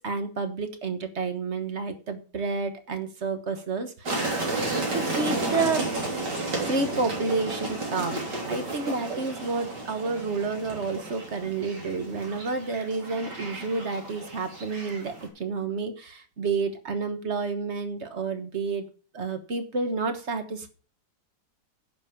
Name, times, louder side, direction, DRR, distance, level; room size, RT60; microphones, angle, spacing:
voice 1, 0.0-4.3 4.9-5.9 6.6-18.9 19.1-20.7, right 4 dB, 40° right, 9 dB, 1.4 m, -30 dB
sound 1, 4.1-15.3, right 2 dB, 60° right, 4.0 m, -32 dB
10.5 x 6.3 x 7.2 m, 0.38 s
omnidirectional pair, 2.1 m